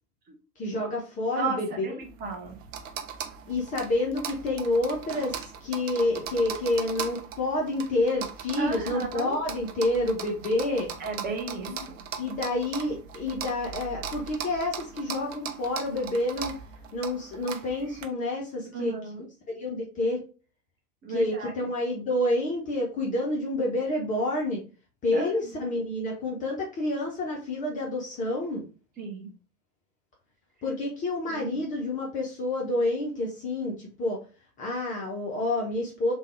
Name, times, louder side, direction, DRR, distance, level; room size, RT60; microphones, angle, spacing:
voice 1, 0.6-2.0 3.5-10.9 11.7-11.9 12.2-16.6 16.9-18.9 19.6-20.2 21.1-24.6 25.0-28.6 30.6-34.2 34.6-36.1, left 2 dB, 20° left, -1 dB, 0.5 m, -28 dB
voice 2, 1.4-2.5 8.6-9.4 11.0-12.0 18.7-19.3 21.0-21.5 25.1-25.3 25.6-25.7 29.0-29.3 31.3-31.6, right 4 dB, 20° right, 2 dB, 0.7 m, -34 dB
sound 1, 2.0-18.0, right 7 dB, 55° right, 0.7 m, -39 dB
3.3 x 2.2 x 3.1 m, 0.36 s
figure-of-eight pair, 90°, 47 cm